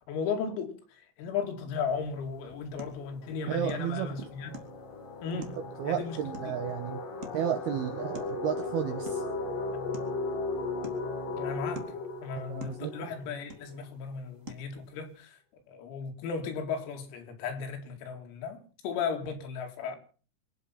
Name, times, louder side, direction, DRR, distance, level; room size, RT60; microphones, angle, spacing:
voice 1, 0.1-0.7 1.2-4.5 5.2-5.6 5.9-6.2 6.4-6.5 11.4-11.9 12.2-15.4 15.7-20.0, left 6 dB, 90° left, 5.2 m, -35 dB
sound 1, 1.7-1.9 2.2-13.8, left 3 dB, 45° left, 4.6 m, -37 dB
sound 2, 1.9-15.3, right 1 dB, 40° right, 1.0 m, -51 dB
voice 2, 3.5-4.3 5.6-7.0 7.3-9.2 12.5-13.1, right 9 dB, 80° right, 2.2 m, -33 dB
25.5 x 8.6 x 5.8 m
omnidirectional pair, 6.0 m